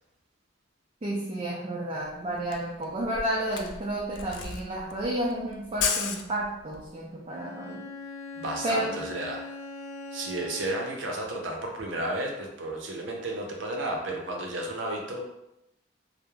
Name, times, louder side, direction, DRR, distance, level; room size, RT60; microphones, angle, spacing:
voice 1, 1.0-7.8 8.6-9.0, right 1 dB, 30° right, -5 dB, 0.4 m, -31 dB
Camera, 2.0-2.1 2.3-6.9, left 6 dB, 80° left, 0.3 m, -33 dB
Bowed string instrument, 7.3-11.1, left 3 dB, 40° left, 0.6 m, -41 dB
voice 2, 8.4-9.5 10.1-15.2, right 1 dB, 90° right, 1 dB, 0.6 m, -32 dB
2.3 x 2.0 x 3.0 m, 0.87 s
head